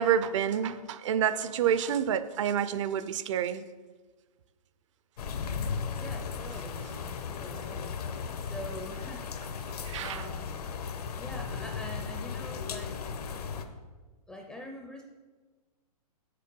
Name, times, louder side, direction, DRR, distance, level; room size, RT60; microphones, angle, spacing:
voice 1, 0.0-3.6 9.9-10.3, right 9 dB, 50° right, 13 dB, 0.5 m, -28 dB
sound 1, 5.2-13.6, left 6 dB, 75° left, 0.9 m, -36 dB
voice 2, 6.0-6.8 7.3-8.0 8.4-10.4 11.2-13.1 14.3-15.0, left 1 dB, 5° left, 2 dB, 0.4 m, -44 dB
6.7 x 6.6 x 5.2 m, 1.3 s
hypercardioid pair, 150°, 20 cm